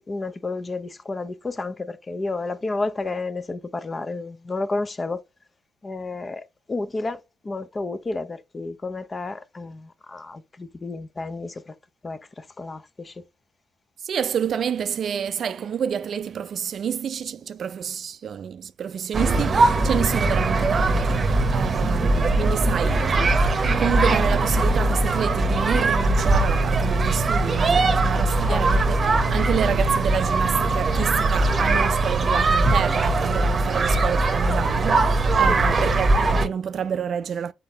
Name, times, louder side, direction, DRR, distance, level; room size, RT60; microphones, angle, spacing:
voice 1, 0.0-5.2 5.8-11.7 12.0-13.2 21.9-22.0 28.2-28.9 35.3-35.6, left 3 dB, 30° left, 0.7 m, -31 dB
voice 2, 14.0-23.2 23.4-29.0 29.3-37.5, right 8 dB, 55° right, 0.4 m, -28 dB
sound 1, 19.1-36.5, right 2 dB, 40° right, 0.8 m, -21 dB
4.5 x 3.7 x 2.9 m
supercardioid pair, 75°, 0 cm